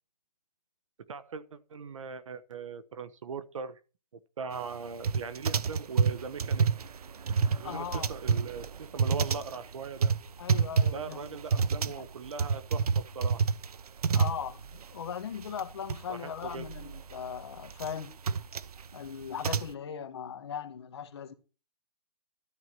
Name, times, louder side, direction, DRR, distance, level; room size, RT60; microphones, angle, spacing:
voice 1, 1.1-3.8 4.4-6.7 7.6-10.1 10.9-13.5 16.1-16.6, right 5 dB, 50° right, 1.1 m, -40 dB
sound 1, 5.0-14.8 15.1-15.2 15.4-16.0 16.3-19.7, right 5 dB, 70° right, 0.8 m, -28 dB
voice 2, 7.6-8.1 10.4-12.1 14.1-18.1 18.9-21.3, left 7 dB, 40° left, 1.6 m, -39 dB
13.0 x 4.7 x 7.5 m
hypercardioid pair, 175°, 20 cm